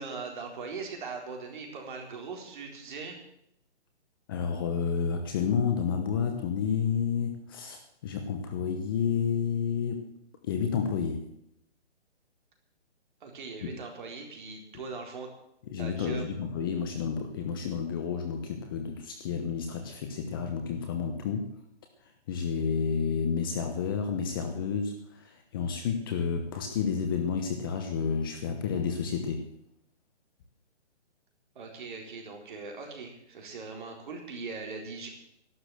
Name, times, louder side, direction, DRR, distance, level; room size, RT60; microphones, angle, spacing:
voice 1, 0.0-3.2 13.2-15.3 15.8-16.3 31.6-35.1, right 4 dB, 45° right, 2 dB, 4.3 m, -40 dB
voice 2, 4.3-10.1 10.4-11.3 13.6-13.7 15.7-21.5 22.3-29.5, left 6 dB, 20° left, 5 dB, 0.9 m, -30 dB
12.5 x 12.0 x 7.9 m, 0.74 s
hypercardioid pair, 160°, 35 cm